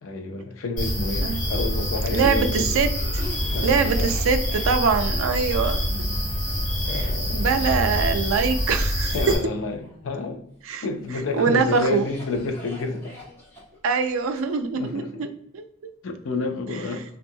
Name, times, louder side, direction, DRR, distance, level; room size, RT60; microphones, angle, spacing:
voice 1, 0.0-2.8 3.5-4.1 5.9-6.0 6.4-6.6 6.8-8.0 9.1-10.5 10.8-13.1 14.7-15.3 16.0-17.0, left 3 dB, 75° left, 5 dB, 0.4 m, -30 dB
sound 1, 0.8-9.4, equal, 40° left, 1.3 m, -26 dB
Cough, 1.2-10.4 11.0-14.9, left 1 dB, 10° left, 1.3 m, -45 dB
voice 2, 2.1-2.9 3.6-5.8 6.9-9.3 10.7-10.8 11.3-12.1 13.8-15.3 15.5-15.9 16.7-16.8, right 5 dB, 80° right, 8 dB, 0.4 m, -23 dB
2.7 x 2.3 x 2.6 m, 0.72 s
head